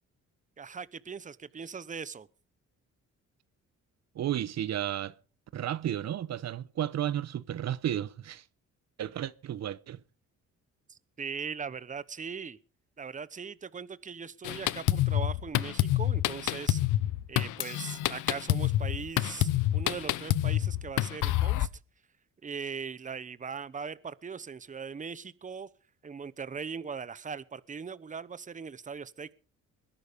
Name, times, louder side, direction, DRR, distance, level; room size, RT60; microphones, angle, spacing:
voice 1, 0.6-2.3 10.9-12.6 13.0-16.8 17.3-21.7 22.4-25.7 26.0-29.3, right 6 dB, 25° right, 0.9 m, -40 dB
voice 2, 4.1-5.1 5.5-8.4 9.0-10.0, right 11 dB, 60° right, 0.9 m, -33 dB
Drum kit, 14.4-21.7, left 14 dB, 85° left, 0.8 m, -28 dB
21.0 x 11.0 x 5.2 m
cardioid pair, 90°, 30 cm